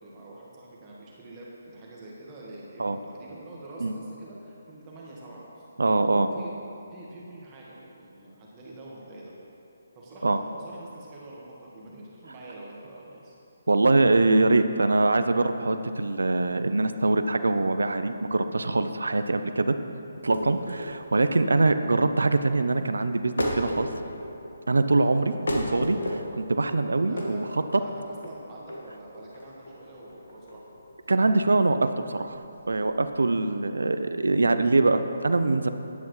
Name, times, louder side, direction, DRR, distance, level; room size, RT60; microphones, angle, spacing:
voice 1, 0.0-6.5 6.9-9.3 9.9-13.3 27.1-28.0 28.2-30.6, right 2 dB, 25° right, -5 dB, 1.5 m, -45 dB
voice 2, 5.8-6.3 10.2-10.4 13.7-19.8 20.2-23.9 24.7-27.4 31.1-32.4 32.7-35.7, right 2 dB, 85° right, 10 dB, 0.5 m, -23 dB
sound 1, 20.1-33.1, equal, 85° left, 1.6 m, -35 dB
11.0 x 10.5 x 3.2 m, 2.7 s
hypercardioid pair, 155°, 0 cm